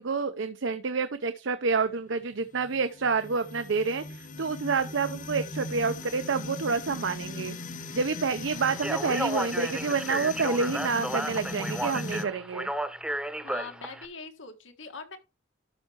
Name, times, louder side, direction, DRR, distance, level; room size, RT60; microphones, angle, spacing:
voice 1, 0.0-7.6 7.9-12.7, right 4 dB, 75° right, 0.6 m, -28 dB
sound 1, 2.4-12.3, left 2 dB, 40° left, 1.0 m, -39 dB
Speech, 8.7-14.1, right 1 dB, 5° right, 0.7 m, -33 dB
voice 2, 13.4-15.2, left 4 dB, 80° left, 1.6 m, -42 dB
12.0 x 5.6 x 3.0 m
head